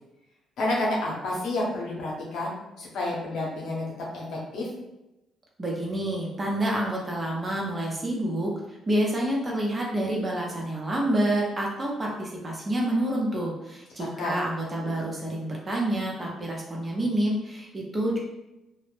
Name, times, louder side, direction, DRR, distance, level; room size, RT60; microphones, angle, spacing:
voice 1, 0.6-3.8 4.1-4.7 14.0-14.3, left 2 dB, 75° left, -3 dB, 0.8 m, -30 dB
voice 2, 5.6-8.5 8.9-18.2, right 1 dB, 30° right, -2 dB, 0.7 m, -28 dB
2.1 x 2.0 x 3.1 m, 0.97 s
cardioid pair, 90°, 0 cm